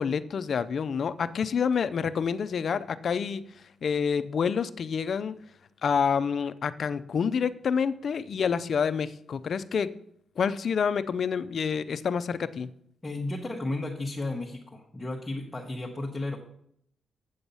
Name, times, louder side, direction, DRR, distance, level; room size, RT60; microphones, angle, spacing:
voice 1, 0.0-3.4 3.8-5.3 5.8-9.9 10.4-12.7, left 6 dB, 45° left, 14 dB, 0.5 m, -28 dB
voice 2, 13.0-16.4, left 2 dB, 15° left, -1 dB, 1.0 m, -33 dB
7.9 x 7.7 x 5.5 m, 0.69 s
wide cardioid pair, 160°, 0 cm